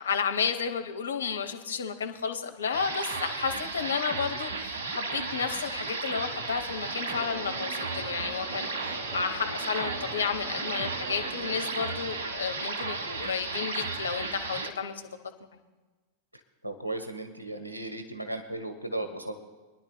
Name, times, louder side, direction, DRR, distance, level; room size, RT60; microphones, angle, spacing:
voice 1, 0.0-15.0, left 6 dB, 70° left, 7 dB, 0.9 m, -32 dB
sound 1, 2.7-14.7, right 3 dB, 65° right, 1.0 m, -34 dB
sound 2, 6.7-12.0, right 1 dB, 35° right, 3.1 m, -43 dB
voice 2, 16.6-19.4, right 2 dB, 85° right, 6 dB, 1.0 m, -36 dB
26.5 x 10.5 x 2.2 m, 1.2 s
figure-of-eight pair, 90°, 0 cm